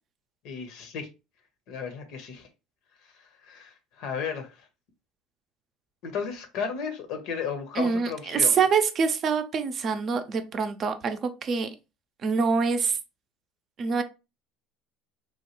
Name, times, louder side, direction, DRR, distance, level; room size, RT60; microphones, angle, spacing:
voice 1, 0.4-1.1 1.7-2.5 3.1-4.6 6.0-8.6, left 6 dB, 65° left, 0.7 m, -34 dB
voice 2, 7.8-11.7 12.2-13.0 13.8-14.0, right 5 dB, 45° right, 0.5 m, -25 dB
3.1 x 2.2 x 2.9 m
hypercardioid pair, 70°, 0 cm